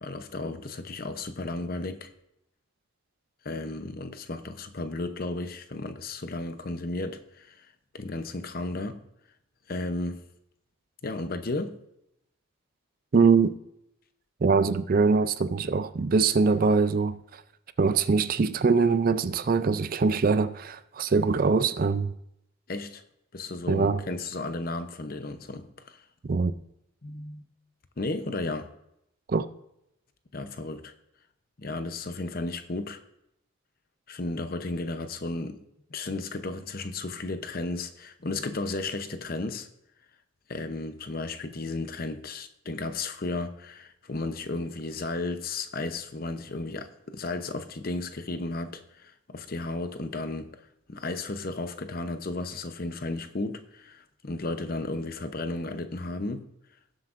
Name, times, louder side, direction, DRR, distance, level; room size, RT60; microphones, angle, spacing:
voice 1, 0.0-2.1 3.4-7.7 7.9-9.0 9.7-10.2 11.0-11.8 22.7-23.0 23.3-26.0 27.0-27.4 28.0-28.7 30.3-30.9 31.6-33.0 34.1-35.6 35.9-39.7 40.5-50.5 50.9-56.5, left 2 dB, 45° left, 0.7 m, -34 dB
voice 2, 13.1-13.5 14.4-17.4 17.8-22.1 23.7-24.0 26.2-26.6 29.3-29.5, right 4 dB, 45° right, 0.4 m, -23 dB
18.5 x 7.8 x 2.5 m
head